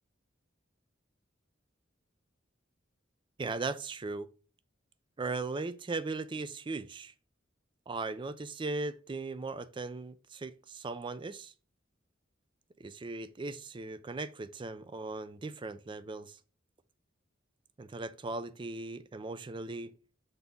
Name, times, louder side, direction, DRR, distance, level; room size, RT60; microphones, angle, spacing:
voice 1, 3.4-4.3 5.2-7.1 7.9-11.5 12.8-16.4 17.8-19.9, right 3 dB, 25° right, 0.4 m, -38 dB
6.7 x 4.0 x 3.6 m
head